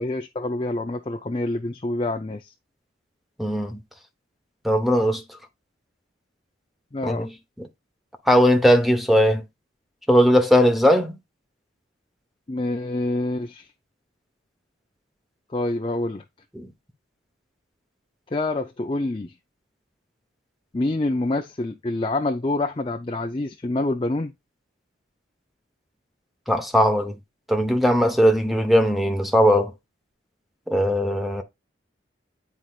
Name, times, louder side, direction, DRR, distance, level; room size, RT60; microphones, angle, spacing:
voice 1, 0.0-2.5 6.9-7.3 12.5-13.7 15.5-16.2 18.3-19.3 20.7-24.3, left 2 dB, 25° left, 0.5 m, -26 dB
voice 2, 3.4-3.8 4.6-5.2 7.0-7.3 8.3-9.4 10.1-11.1 16.6-16.7 26.5-27.2 27.5-29.7 30.7-31.4, equal, ahead, 0.9 m, -19 dB
9.7 x 4.5 x 2.4 m
head